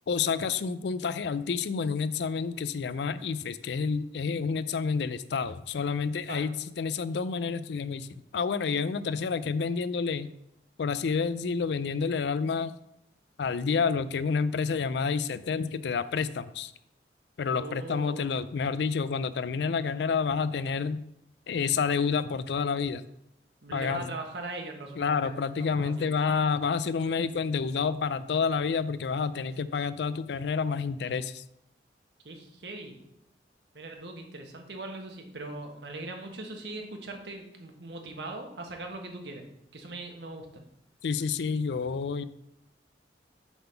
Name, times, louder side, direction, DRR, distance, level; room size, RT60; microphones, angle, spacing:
voice 1, 0.1-10.3 10.8-12.7 13.4-16.7 17.4-21.0 21.5-23.0 23.7-24.1 25.0-31.4 41.0-42.2, left 5 dB, 75° left, 15 dB, 0.4 m, -29 dB
voice 2, 17.5-18.4 23.6-25.4 26.0-26.1 32.2-33.0 33.7-39.4 39.7-40.6, right 2 dB, 75° right, 3 dB, 1.3 m, -40 dB
6.9 x 3.9 x 5.8 m, 0.77 s
head